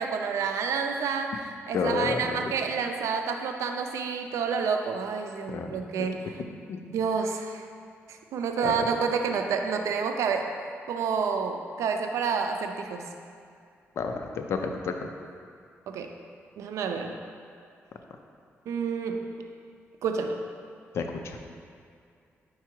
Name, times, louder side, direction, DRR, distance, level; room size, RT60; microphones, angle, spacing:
voice 1, 0.0-1.4 1.7-6.2 6.9-7.6 8.3-10.5 10.9-13.0 15.9-16.1 16.6-17.2 18.7-19.2 20.0-20.4, right 6 dB, 85° right, 5 dB, 0.4 m, -29 dB
voice 2, 1.7-2.5 5.5-6.1 6.5-6.8 8.6-8.9 14.0-14.9 20.9-21.4, left 5 dB, 65° left, 5 dB, 0.5 m, -31 dB
4.7 x 4.5 x 4.5 m, 2.3 s
cardioid pair, 125°, 5 cm